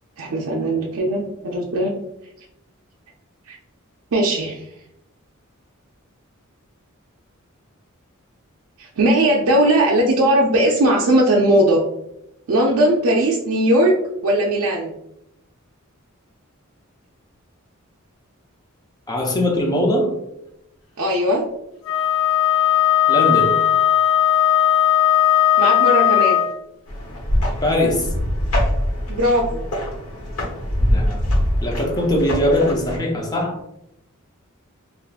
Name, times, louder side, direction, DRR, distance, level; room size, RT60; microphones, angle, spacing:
voice 1, 0.2-1.9 3.5-3.6 4.1-4.6 8.8-11.8 12.5-13.9 14.2-14.9 21.0-21.5 25.6-26.5 29.1-29.6, right 1 dB, 85° right, -2 dB, 0.5 m, -18 dB
voice 2, 19.1-20.1 23.1-23.6 27.6-28.1 30.9-31.2 31.6-33.6, left 1 dB, 20° left, 2 dB, 0.5 m, -21 dB
Wind instrument woodwind instrument, 21.8-26.6, left 11 dB, 65° left, 0.6 m, -17 dB
sound 1, 26.9-33.0, equal, 85° left, 1.1 m, -23 dB
3.5 x 2.4 x 2.4 m, 0.81 s
head